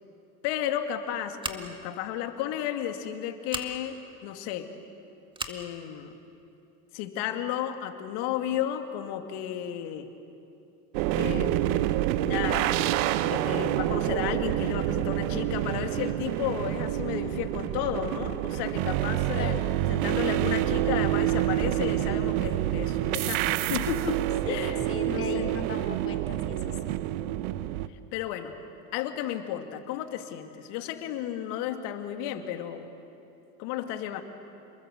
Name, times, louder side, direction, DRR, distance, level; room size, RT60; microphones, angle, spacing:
voice 1, 0.4-4.7 5.5-6.2 6.9-10.1 11.1-12.8 13.2-19.6 19.9-24.8 25.1-25.5 27.9-28.6 28.9-32.9 33.6-34.2, left 10 dB, 60° left, 6 dB, 2.4 m, -33 dB
Scissors, 1.4-1.9 3.5-3.7 5.3-5.6, right 2 dB, 10° right, 1.9 m, -36 dB
sound 1, 10.9-27.9, right 14 dB, 60° right, 1.1 m, -27 dB
voice 2, 19.4-19.7 24.5-24.6 24.9-26.8, left 4 dB, 30° left, 5 dB, 3.8 m, -36 dB
29.5 x 21.5 x 8.0 m, 2.9 s
hypercardioid pair, 90°, 47 cm